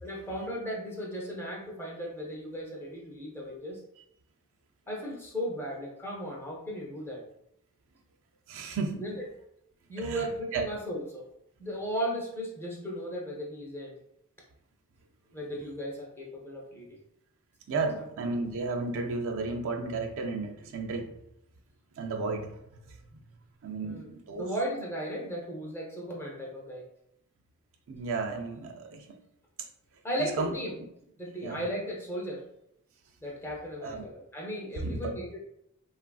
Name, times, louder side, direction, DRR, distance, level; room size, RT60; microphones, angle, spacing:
voice 1, 0.0-3.8 4.9-7.2 9.0-9.2 9.9-11.3 11.6-14.0 15.3-17.0 23.8-24.1 24.4-26.9 30.0-30.7 31.2-32.4 33.2-35.4, equal, 10° left, -2 dB, 0.6 m, -36 dB
voice 2, 8.5-9.1 10.0-10.3 10.5-10.6 17.7-21.2 21.9-23.2 23.6-24.5 27.9-29.2 29.6-29.7 30.2-30.6 31.4-31.7 33.8-34.1 34.8-35.1, right 3 dB, 65° right, 3 dB, 0.4 m, -33 dB
3.1 x 2.4 x 2.3 m, 0.78 s
head